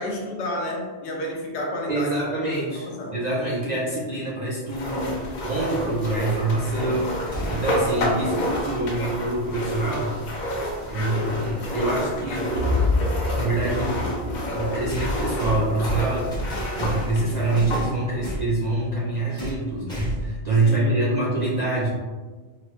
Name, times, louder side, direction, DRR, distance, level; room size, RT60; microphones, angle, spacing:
voice 1, 0.0-2.2 2.7-3.2 20.6-21.2, left 1 dB, 75° left, -1 dB, 0.9 m, -30 dB
voice 2, 1.9-10.1 10.9-12.9 13.3-16.4 16.8-21.9, right 2 dB, 65° right, -6 dB, 0.4 m, -26 dB
sound 1, 4.7-17.9, equal, 60° left, 0.5 m, -29 dB
sound 2, 7.3-7.9 10.0-10.1 11.2-11.3 14.9-17.2 17.6-18.5 19.4-19.6 19.9-20.4, right 1 dB, 5° left, 0.6 m, -31 dB
sound 3, 12.6-16.5, left 3 dB, 85° right, 1.0 m, -27 dB
2.9 x 2.1 x 3.0 m, 1.4 s
omnidirectional pair, 1.2 m